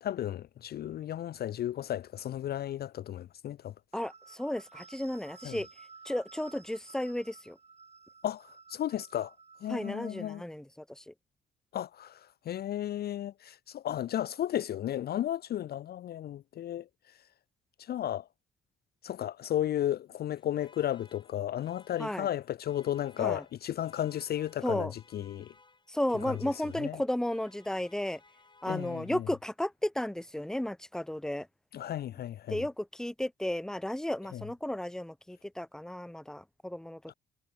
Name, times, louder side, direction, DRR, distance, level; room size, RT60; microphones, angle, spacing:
voice 1, 0.0-3.7 5.4-5.6 8.2-9.3 9.6-10.4 11.7-16.9 17.8-18.3 19.0-25.5 26.2-27.0 28.7-29.3 31.7-32.7 34.3-34.4 37.1-37.2, left 11 dB, 50° left, 0.4 m, -34 dB
voice 2, 3.9-5.7 6.1-7.6 9.7-10.6 11.0-11.1 22.0-22.3 23.2-23.4 24.6-24.9 25.9-28.2 28.6-31.5 32.5-37.0, left 1 dB, 5° left, 0.9 m, -34 dB
sound 1, 3.9-10.4, right 4 dB, 35° right, 5.6 m, -55 dB
Alarm, 20.1-29.6, left 3 dB, 25° left, 7.0 m, -61 dB
cardioid pair, 90°, 20 cm